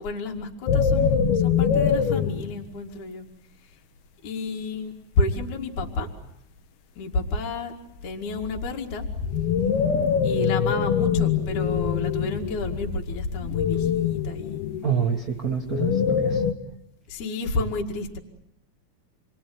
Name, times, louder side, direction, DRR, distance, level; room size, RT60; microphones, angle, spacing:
voice 1, 0.0-3.3 4.2-6.1 7.0-7.7 8.0-9.1 10.2-14.6 17.1-18.2, left 2 dB, 55° left, 1 dB, 3.4 m, -30 dB
sound 1, 0.7-2.6 5.8-5.9 8.0-16.5, left 7 dB, 85° left, 3.3 m, -24 dB
voice 2, 14.8-16.4, right 7 dB, 70° right, 2 dB, 0.8 m, -27 dB
29.5 x 21.5 x 9.5 m, 0.82 s
omnidirectional pair, 4.3 m